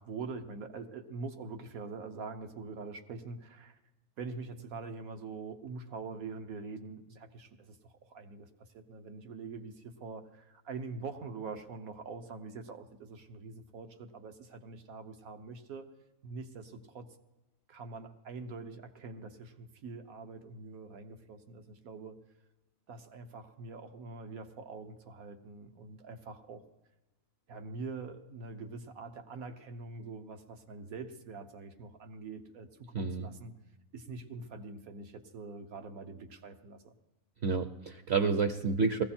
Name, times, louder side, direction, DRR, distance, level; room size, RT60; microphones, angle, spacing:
voice 1, 0.0-3.8 4.2-15.9 16.2-17.2 17.7-22.2 22.9-26.6 27.5-33.5 33.9-36.9, right 4 dB, 85° right, 7 dB, 1.5 m, -44 dB
voice 2, 32.9-33.3 37.4-39.0, right 4 dB, 55° right, 8 dB, 0.9 m, -29 dB
20.0 x 15.5 x 4.4 m, 1.0 s
omnidirectional pair, 1.5 m